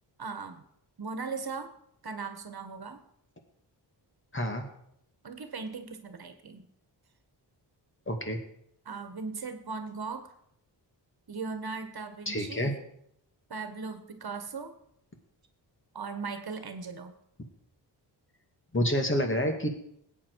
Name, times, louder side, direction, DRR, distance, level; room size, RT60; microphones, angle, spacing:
voice 1, 0.2-0.6 1.0-1.7 2.0-3.0 5.2-6.7 8.8-10.4 11.3-12.7 13.5-14.8 15.9-17.1, right 4 dB, 55° right, 8 dB, 1.5 m, -38 dB
voice 2, 4.3-4.7 8.1-8.4 12.3-12.7 18.7-19.7, equal, 25° left, 4 dB, 2.2 m, -28 dB
20.0 x 8.9 x 4.7 m, 0.72 s
wide cardioid pair, 110°, 44 cm